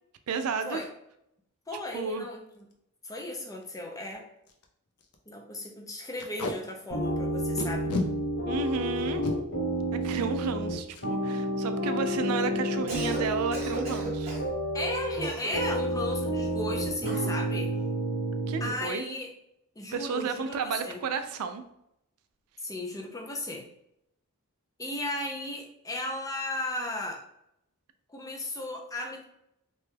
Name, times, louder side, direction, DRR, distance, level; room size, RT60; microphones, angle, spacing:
voice 1, 0.3-0.8 1.9-2.3 8.5-9.2 9.9-14.4 18.5-19.1 19.9-21.6, right 5 dB, 75° right, 9 dB, 0.3 m, -32 dB
voice 2, 1.7-2.7 3.0-4.2 5.3-7.9 14.7-17.7 18.6-19.3 19.8-21.0 22.6-23.6 24.8-27.2 28.1-29.2, left 1 dB, 15° left, 1 dB, 0.5 m, -35 dB
Packing tape duct tape, 2.5-2.7 3.2-3.3 3.5-3.6 4.1-4.2 4.5-4.6 5.0-5.2 6.2-6.5 7.6-8.1 9.0-9.3 10.9-11.1 11.4-11.6 11.9-12.3, left 2 dB, 80° left, 0.5 m, -32 dB
sound 1, 6.9-18.7, right 1 dB, 60° left, 1.4 m, -30 dB
Cough, 12.7-13.3 13.5-14.5 15.2-15.9 17.0-17.4, right 2 dB, 30° right, 0.9 m, -38 dB
3.0 x 2.2 x 3.2 m, 0.77 s
head